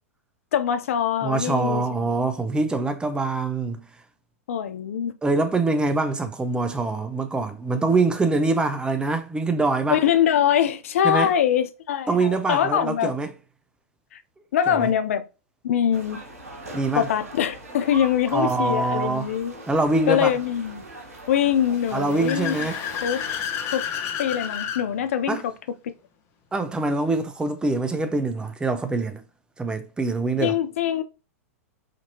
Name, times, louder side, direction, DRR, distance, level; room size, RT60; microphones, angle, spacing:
voice 1, 0.5-2.1 4.5-5.1 9.9-13.1 14.1-14.2 14.5-15.2 15.6-16.2 16.9-19.6 20.1-20.8 21.3-22.5 23.0-23.2 23.7-23.9 24.2-25.5 30.4-31.0, left 9 dB, 70° left, 0.5 m, -23 dB
voice 2, 1.2-3.8 5.2-10.0 11.0-11.3 12.1-13.3 14.7-14.9 16.7-17.1 18.3-19.3 19.7-20.3 21.9-22.8 25.3-25.4 26.5-29.2 29.6-30.6, right 3 dB, 10° right, 0.6 m, -24 dB
sound 1, 15.9-23.4, right 2 dB, 80° right, 1.1 m, -41 dB
Car / Accelerating revving vroom, 21.6-24.8, left 8 dB, 40° left, 1.0 m, -31 dB
5.1 x 2.9 x 2.7 m
hypercardioid pair, 100°, 8 cm